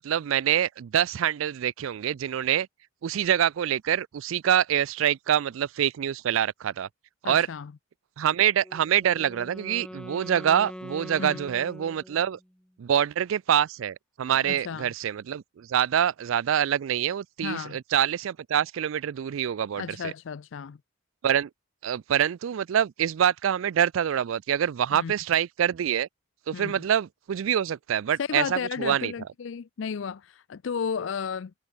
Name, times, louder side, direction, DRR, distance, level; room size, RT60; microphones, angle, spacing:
voice 1, 0.0-2.7 3.0-6.9 7.2-7.5 8.2-12.4 12.8-20.1 21.2-21.5 21.8-26.1 26.5-29.1, right 9 dB, 75° right, 0.4 m, -25 dB
voice 2, 7.2-7.7 11.2-11.4 14.5-14.9 17.4-17.8 19.8-20.8 24.9-25.1 26.5-26.8 28.2-31.5, left 6 dB, 65° left, 0.4 m, -33 dB
Wind instrument woodwind instrument, 8.6-12.5, equal, 5° left, 1.3 m, -43 dB
head